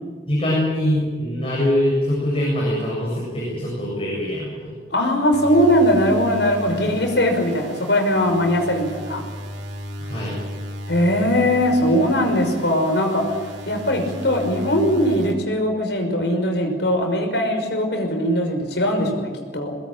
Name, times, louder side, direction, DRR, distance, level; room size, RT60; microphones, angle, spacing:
voice 1, 0.3-4.7 10.0-10.4, left 1 dB, 30° left, -4 dB, 7.7 m, -23 dB
voice 2, 4.9-9.2 10.9-13.4 13.7-19.8, equal, 80° left, 4 dB, 5.9 m, -20 dB
sound 1, 5.3-15.3, equal, 85° right, 3.7 m, -35 dB
23.0 x 20.5 x 9.1 m, 1.5 s
head